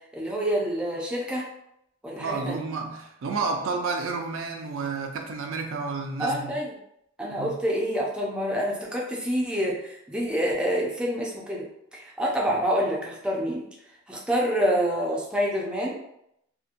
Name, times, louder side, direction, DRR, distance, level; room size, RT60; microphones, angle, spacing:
voice 1, 0.1-1.5 2.0-2.7 6.2-6.7 7.2-11.6 11.9-13.6 14.1-16.0, equal, 5° right, -3 dB, 0.4 m, -27 dB
voice 2, 2.2-6.6 7.4-7.6, right 4 dB, 75° right, 4 dB, 0.4 m, -30 dB
2.7 x 2.1 x 2.5 m, 0.77 s
head